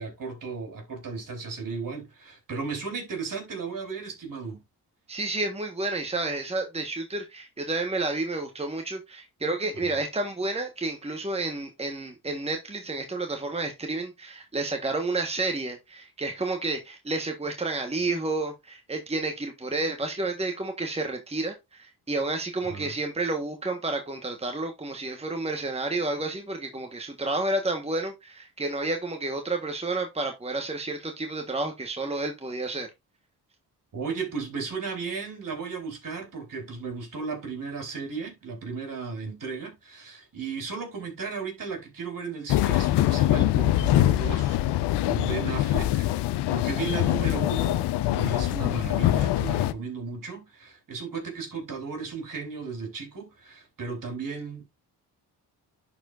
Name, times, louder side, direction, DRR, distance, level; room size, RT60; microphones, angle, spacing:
voice 1, 0.0-4.6 9.8-9.9 22.6-22.9 33.9-46.1 46.5-54.6, right 5 dB, 55° right, 3.9 m, -35 dB
voice 2, 5.1-32.9, right 2 dB, 15° right, 1.3 m, -30 dB
sound 1, 42.5-49.7, left 14 dB, 85° left, 0.6 m, -24 dB
11.0 x 4.7 x 2.5 m
supercardioid pair, 60°, 40 cm